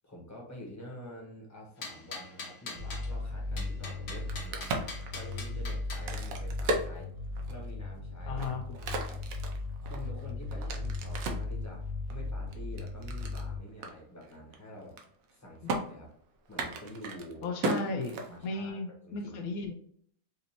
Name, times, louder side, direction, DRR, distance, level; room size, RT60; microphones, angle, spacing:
voice 1, 0.0-7.1 7.5-8.5 8.8-9.2 9.8-15.0 15.3-16.1 16.5-17.5 18.3-19.5, left 1 dB, 15° left, -3 dB, 1.1 m, -47 dB
sound 1, 1.8-3.1 3.6-6.1, left 3 dB, 55° left, 1.0 m, -42 dB
sound 2, 2.7-13.6, left 2 dB, 25° right, 1.0 m, -37 dB
Crack, 4.0-7.7 8.2-11.5 12.1-13.5 13.8-13.9 14.2-14.5 14.8-15.3 15.7-15.8 16.5-18.7, right 2 dB, 75° right, 1.1 m, -36 dB
voice 2, 8.3-8.6 15.6-15.7 17.4-19.7, left 3 dB, 85° left, 2 dB, 1.1 m, -35 dB
5.1 x 2.6 x 2.8 m, 0.62 s
omnidirectional pair, 1.5 m